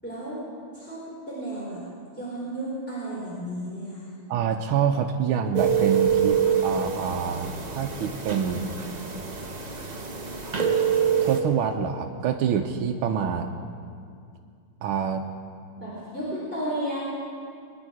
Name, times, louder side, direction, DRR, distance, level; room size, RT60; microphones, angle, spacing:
voice 1, 0.0-0.5 0.7-1.8 2.1-4.1 15.8-17.0, right 1 dB, 5° left, -9 dB, 3.8 m, -33 dB
voice 2, 4.3-8.8 10.7-13.5 14.8-15.2, right 7 dB, 80° right, 2 dB, 1.5 m, -27 dB
sound 1, 5.5-11.4, right 7 dB, 35° right, 0.7 m, -25 dB
23.0 x 10.5 x 4.9 m, 2.3 s
omnidirectional pair, 2.3 m